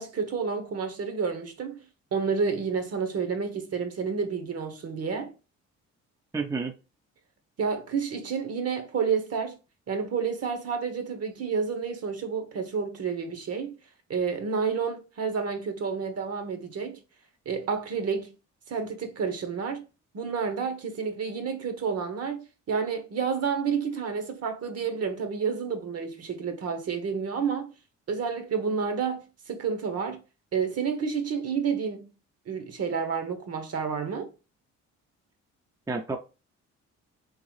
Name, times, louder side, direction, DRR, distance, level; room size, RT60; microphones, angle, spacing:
voice 1, 0.0-1.8 2.1-5.3 7.6-9.6 9.9-13.7 14.1-17.0 17.4-18.3 18.7-19.8 20.1-27.7 28.1-30.2 30.5-32.1 32.5-34.3, right 6 dB, 55° right, 1.0 m, -30 dB
voice 2, 6.3-6.7 35.9-36.2, right 3 dB, 10° right, 0.5 m, -30 dB
3.9 x 3.0 x 3.1 m
cardioid pair, 90°, 30 cm